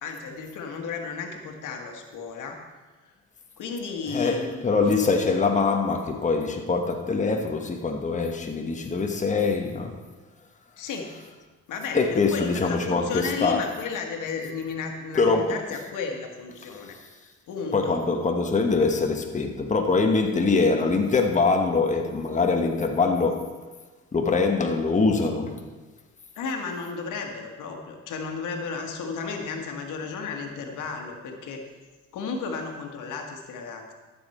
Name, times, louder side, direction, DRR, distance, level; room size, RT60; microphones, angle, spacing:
voice 1, 0.0-2.6 3.6-4.9 10.8-11.1 11.7-17.0 17.5-18.0 26.3-31.6 32.1-33.9, left 5 dB, 85° left, 1.6 m, -33 dB
voice 2, 4.1-10.0 11.9-13.7 15.2-15.6 17.7-23.6 24.1-25.7, left 4 dB, 25° left, 1.2 m, -23 dB
13.5 x 7.3 x 4.3 m
cardioid pair, 90°, 30 cm